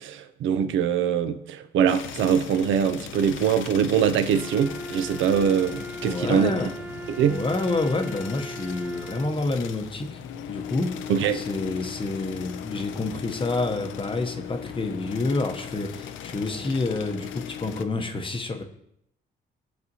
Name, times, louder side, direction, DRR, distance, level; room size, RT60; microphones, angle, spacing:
voice 1, 0.0-6.5 7.1-7.4 11.1-11.4, right 8 dB, 75° right, 0.5 m, -23 dB
sound 1, 1.9-17.9, left 9 dB, 80° left, 0.5 m, -39 dB
Wind instrument woodwind instrument, 4.3-9.4, right 1 dB, 10° right, 0.4 m, -38 dB
voice 2, 6.0-6.8 7.3-10.2 10.5-18.6, left 3 dB, 25° left, 0.7 m, -28 dB
11.0 x 4.2 x 2.8 m
cardioid pair, 90°, 20 cm